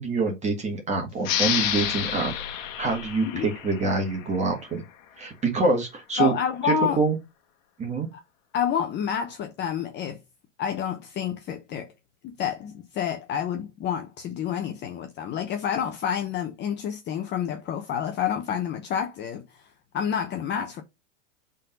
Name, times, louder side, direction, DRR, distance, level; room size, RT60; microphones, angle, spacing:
voice 1, 0.0-4.8 5.2-6.3 6.6-7.2 7.8-8.1, right 3 dB, 20° right, 1.8 m, -26 dB
sound 1, 1.2-4.5, left 10 dB, 50° left, 1.6 m, -29 dB
voice 2, 6.2-7.0 8.1-8.2 8.5-10.2 10.6-11.9 12.2-19.4 19.9-20.8, left 8 dB, 30° left, 0.9 m, -28 dB
5.4 x 3.9 x 5.2 m
hypercardioid pair, 130°, 38 cm